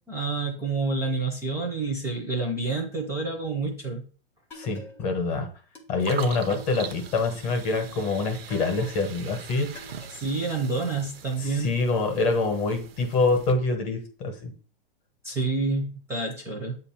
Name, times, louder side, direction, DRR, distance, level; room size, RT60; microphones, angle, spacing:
voice 1, 0.1-4.0 10.1-11.8 15.2-16.8, right 3 dB, 10° right, -1 dB, 0.8 m, -28 dB
voice 2, 4.5-5.5 5.9-9.7 11.4-14.5, left 3 dB, 25° left, 4 dB, 1.2 m, -25 dB
sound 1, 4.5-5.3 5.8-7.2 7.8-9.2 9.8-11.2, left 2 dB, 5° left, 0.4 m, -46 dB
sound 2, 6.0-13.5, right 7 dB, 70° right, 0.8 m, -42 dB
8.1 x 2.8 x 5.7 m, 0.40 s
hypercardioid pair, 160°, 30 cm